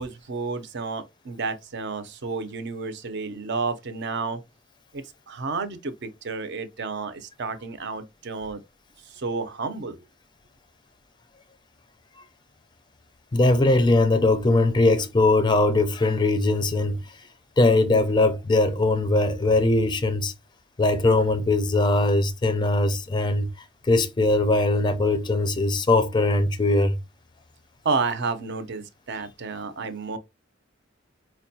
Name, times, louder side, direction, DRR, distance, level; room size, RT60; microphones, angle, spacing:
voice 1, 0.0-4.4 4.9-8.6 9.1-10.0 27.8-30.2, right 4 dB, 60° right, 0.6 m, -31 dB
voice 2, 13.3-17.0 17.6-20.3 20.8-23.5 23.9-27.0, left 2 dB, 25° left, 0.4 m, -21 dB
4.6 x 2.2 x 2.7 m
head